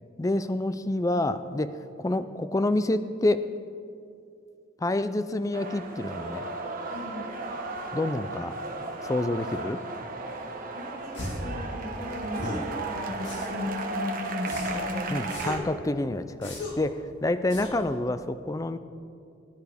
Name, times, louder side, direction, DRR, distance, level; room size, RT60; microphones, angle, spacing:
voice 1, 0.2-3.4 4.8-6.4 7.9-8.6 9.0-9.8 12.4-12.6 15.1-18.8, left 2 dB, 20° left, 12 dB, 0.4 m, -28 dB
sound 1, 5.5-15.6, right 3 dB, 50° right, 1.2 m, -35 dB
voice 2, 6.9-7.2 10.6-15.2, left 2 dB, 5° right, -11 dB, 3.1 m, -36 dB
sound 2, 11.1-11.5 12.3-12.7 13.2-13.7 14.5-14.9 15.3-15.7 16.4-16.9 17.5-17.9, left 1 dB, 75° left, 2.0 m, -37 dB
20.0 x 10.5 x 3.5 m, 2.5 s
head